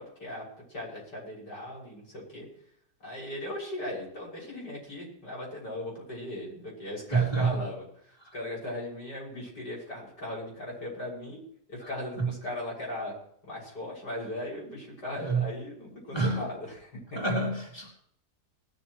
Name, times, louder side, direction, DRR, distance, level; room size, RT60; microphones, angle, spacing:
voice 1, 0.0-2.5 3.0-7.9 8.3-11.4 11.7-13.1 13.4-17.2, left 1 dB, 80° left, -4 dB, 7.2 m, -38 dB
voice 2, 7.1-7.5 12.2-12.3 15.2-15.4 16.1-16.4 17.2-17.9, right 4 dB, 15° left, -2 dB, 4.0 m, -27 dB
19.0 x 14.0 x 3.2 m, 0.64 s
omnidirectional pair, 1.8 m